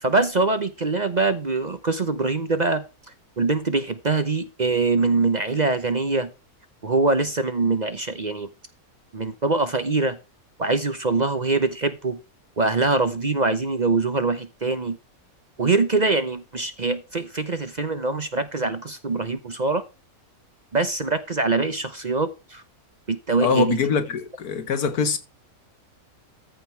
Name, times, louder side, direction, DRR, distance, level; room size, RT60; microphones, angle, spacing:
voice 1, 0.0-2.8 3.4-6.3 6.8-8.5 9.1-10.2 10.6-12.2 12.6-15.0 15.6-19.8 20.7-22.6 23.1-23.8, right 3 dB, 35° right, 0.8 m, -23 dB
voice 2, 23.4-25.2, left 6 dB, 85° left, 1.9 m, -23 dB
14.0 x 5.6 x 4.5 m
omnidirectional pair, 1.6 m